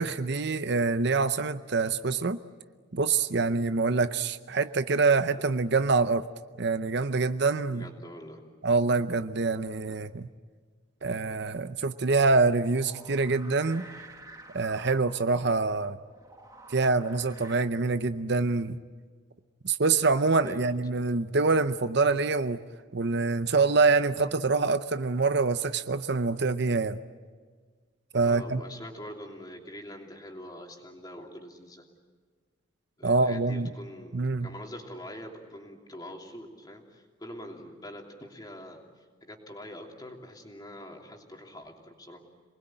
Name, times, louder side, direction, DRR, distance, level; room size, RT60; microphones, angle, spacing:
voice 1, 0.0-2.4 2.9-6.3 6.6-7.9 8.6-10.3 11.0-13.8 14.5-16.0 16.7-18.8 19.6-22.6 22.9-27.0 28.1-28.6 33.0-33.7 34.1-34.5, right 4 dB, 55° right, 11 dB, 0.7 m, -25 dB
voice 2, 7.7-8.4 20.4-20.7 28.2-31.8 33.0-38.8 39.2-42.2, left 1 dB, 20° left, 1 dB, 3.1 m, -44 dB
sound 1, 12.6-17.6, right 2 dB, 15° right, 1.5 m, -50 dB
27.5 x 20.5 x 9.0 m, 1.5 s
head